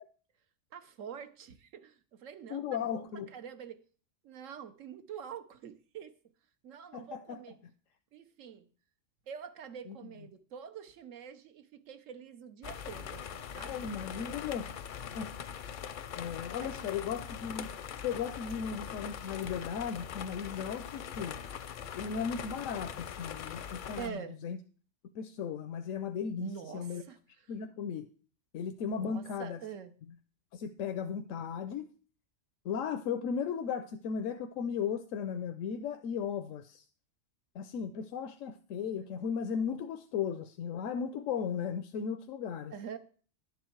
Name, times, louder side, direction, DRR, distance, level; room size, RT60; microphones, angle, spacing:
voice 1, 0.7-3.8 4.2-6.2 6.6-7.6 8.1-8.7 9.3-13.8 16.6-16.7 24.0-24.4 26.4-27.2 28.9-30.0 42.7-43.0, right 7 dB, 85° right, 1.2 m, -46 dB
voice 2, 2.5-3.3 6.9-7.4 9.9-10.0 13.6-14.7 15.1-15.3 16.2-17.7 18.0-21.4 21.9-24.6 25.1-27.0 27.5-28.1 28.5-29.6 30.5-31.9 32.6-36.8 37.5-42.7, left 7 dB, 90° left, 1.0 m, -36 dB
sound 1, 12.6-24.1, left 8 dB, 55° left, 0.6 m, -42 dB
11.0 x 7.3 x 4.5 m
omnidirectional pair, 1.3 m